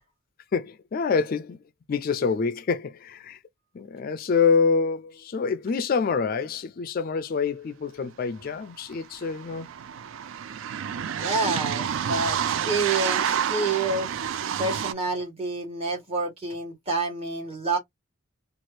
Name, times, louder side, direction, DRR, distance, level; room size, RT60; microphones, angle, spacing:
voice 1, 0.5-1.6 1.9-3.4 3.7-9.7, left 5 dB, 45° left, 0.3 m, -26 dB
sound 1, 8.4-8.5 8.7-14.9, right 8 dB, 65° right, 0.3 m, -29 dB
voice 2, 11.2-14.1 14.6-17.8, right 3 dB, 30° right, 1.3 m, -28 dB
2.8 x 2.3 x 3.1 m
head